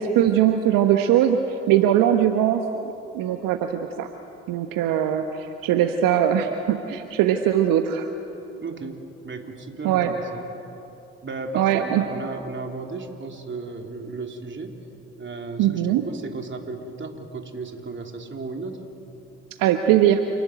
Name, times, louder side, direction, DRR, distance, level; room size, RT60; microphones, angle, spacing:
voice 1, 0.0-1.4 1.7-4.1 4.5-8.1 9.8-10.1 11.5-12.0 15.6-16.0 19.6-20.2, right 10 dB, 65° right, 6 dB, 1.3 m, -21 dB
voice 2, 8.6-9.0 9.2-10.5 11.2-14.8 15.2-18.8, right 3 dB, 30° right, 3 dB, 3.6 m, -34 dB
28.0 x 19.0 x 9.2 m, 2.9 s
hypercardioid pair, 50°, 36 cm